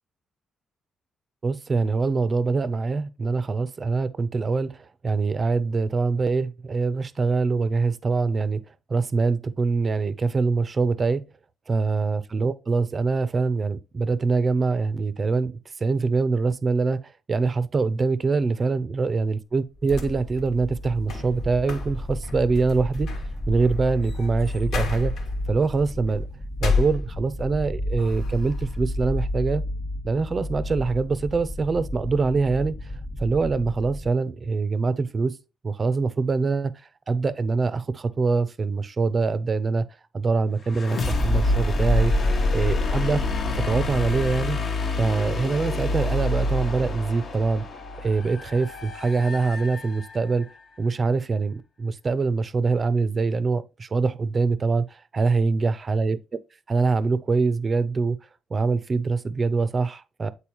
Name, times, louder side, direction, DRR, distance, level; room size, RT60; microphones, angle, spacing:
voice 1, 1.4-8.6 8.9-11.2 11.7-15.5 15.8-23.1 23.5-25.1 25.5-26.3 26.6-29.6 30.0-32.8 33.2-35.4 35.6-36.7 37.1-39.9 40.1-42.1 42.5-43.2 43.5-44.6 45.0-50.5 50.8-56.4 56.7-58.2 58.5-60.3, right 4 dB, 30° right, 0.5 m, -24 dB
sound 1, 19.8-27.6 28.0-28.8, left 5 dB, 80° left, 1.6 m, -33 dB
sound 2, 19.8-34.1, left 1 dB, 20° left, 1.2 m, -32 dB
sound 3, 40.7-50.4, left 2 dB, 45° left, 0.9 m, -26 dB
8.6 x 4.1 x 2.9 m
cardioid pair, 150°, 0 cm